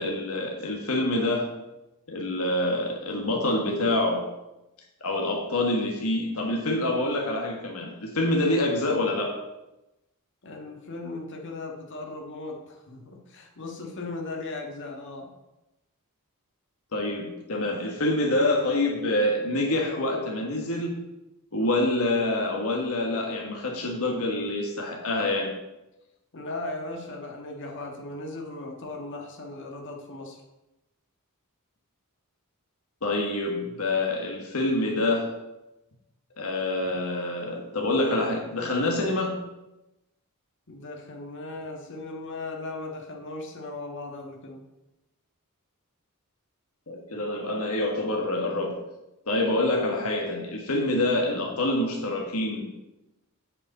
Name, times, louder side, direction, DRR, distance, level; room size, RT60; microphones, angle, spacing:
voice 1, 0.0-1.4 2.1-4.2 5.0-9.3 16.9-20.9 21.5-25.5 33.0-35.3 36.4-39.3 46.9-48.7 49.3-52.6, left 1 dB, 70° left, 0 dB, 1.6 m, -26 dB
voice 2, 10.4-15.3 26.3-30.4 40.7-44.6, left 2 dB, 55° left, 0 dB, 1.6 m, -37 dB
8.3 x 5.3 x 7.6 m, 0.97 s
head